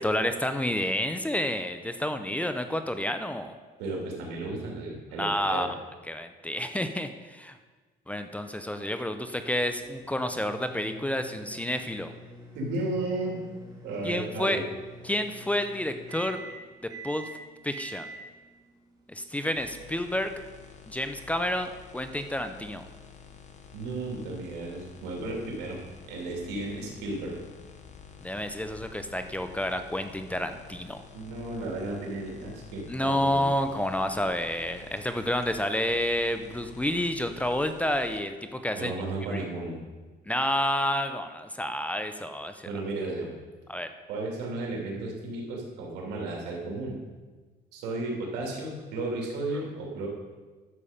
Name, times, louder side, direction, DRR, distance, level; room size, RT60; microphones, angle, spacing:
voice 1, 0.0-3.6 5.2-5.7 6.1-7.6 8.1-12.1 14.0-14.6 15.0-16.4 17.0-17.3 17.6-18.1 19.1-20.3 20.9-22.8 28.2-31.0 32.9-38.9 39.3-39.4 40.3-42.7 43.7-43.9, left 1 dB, 10° left, 8 dB, 0.6 m, -29 dB
voice 2, 3.8-5.7 12.5-13.4 13.8-14.6 23.7-25.8 26.1-27.3 31.1-33.5 38.7-39.7 42.6-43.3 44.1-47.0 47.7-50.1, right 2 dB, 90° right, -1 dB, 2.7 m, -34 dB
sound 1, 9.6-20.0, right 1 dB, 20° right, 2.3 m, -46 dB
sound 2, 19.5-38.2, left 6 dB, 45° left, 1.2 m, -49 dB
11.0 x 7.1 x 5.1 m, 1.3 s
cardioid pair, 110°, 17 cm